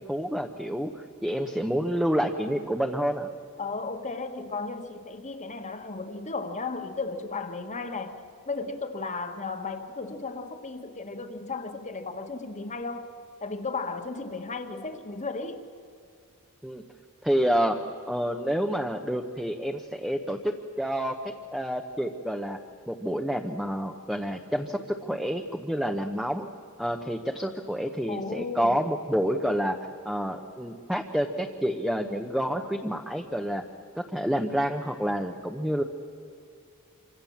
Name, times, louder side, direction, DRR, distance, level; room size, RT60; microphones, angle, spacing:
voice 1, 0.0-3.3 16.6-16.8 17.2-17.8 18.1-22.6 22.9-26.5 26.8-29.8 30.0-33.6 34.0-35.8, equal, ahead, 3 dB, 1.0 m, -28 dB
voice 2, 3.6-13.1 13.4-15.6 28.1-28.8, left 3 dB, 35° left, 7 dB, 1.7 m, -35 dB
27.0 x 25.5 x 7.3 m, 2.5 s
head